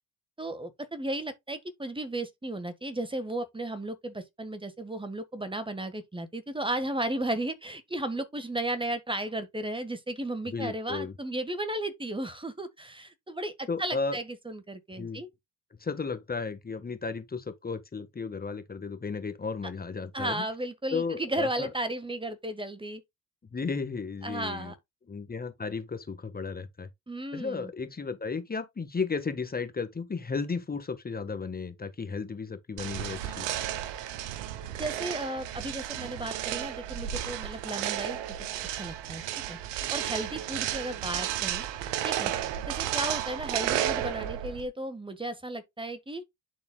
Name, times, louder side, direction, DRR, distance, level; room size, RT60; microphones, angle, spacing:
voice 1, 0.4-15.3 20.1-23.0 24.2-24.7 27.1-27.7 34.8-39.2 39.5-39.6 39.9-41.6 42.0-42.3 42.7-46.2, right 1 dB, 15° right, 1.5 m, -34 dB
voice 2, 10.5-11.1 13.7-14.2 15.0-15.2 15.8-20.4 20.9-21.7 23.5-24.7 25.1-26.9 27.3-33.5, left 4 dB, 25° left, 1.4 m, -34 dB
sound 1, 32.8-44.7, right 11 dB, 80° right, 0.9 m, -33 dB
11.0 x 4.2 x 2.3 m
hypercardioid pair, 55°, 37 cm